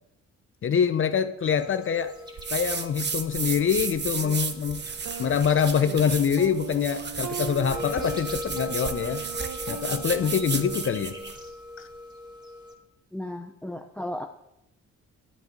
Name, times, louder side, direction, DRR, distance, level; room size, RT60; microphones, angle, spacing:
voice 1, 0.6-2.2 2.5-4.8 5.2-9.2 9.7-11.2 11.8-11.9, left 7 dB, 45° left, 11 dB, 0.7 m, -25 dB
sound 1, 1.4-12.7, left 1 dB, 15° right, 2.5 m, -41 dB
sound 2, 2.4-11.4, right 5 dB, 35° right, 1.1 m, -34 dB
sound 3, 4.2-4.4 5.1-11.4, right 8 dB, 65° right, 1.0 m, -39 dB
voice 2, 13.1-14.3, left 1 dB, 5° left, 6 dB, 0.7 m, -34 dB
11.0 x 7.9 x 5.2 m, 0.84 s
cardioid pair, 90°, 30 cm